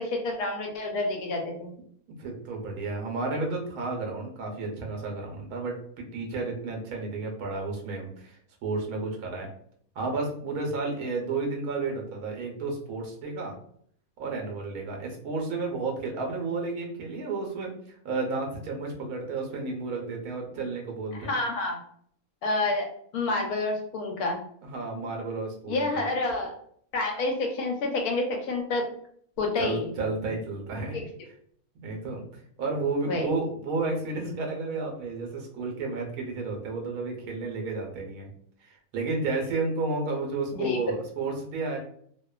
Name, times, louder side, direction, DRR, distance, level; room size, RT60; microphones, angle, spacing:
voice 1, 0.0-1.7 21.1-21.8 22.4-22.9 23.1-24.4 25.7-26.5 26.9-28.9 29.4-29.8 30.9-31.0 33.1-33.3 40.5-40.8, left 2 dB, 85° left, 2 dB, 1.1 m, -28 dB
voice 2, 2.2-9.5 10.0-13.5 14.2-21.3 24.6-26.0 29.6-31.0 31.8-32.3 32.6-38.3 38.6-41.8, right 3 dB, 80° right, 1 dB, 1.2 m, -32 dB
2.8 x 2.1 x 2.3 m, 0.64 s
omnidirectional pair, 1.6 m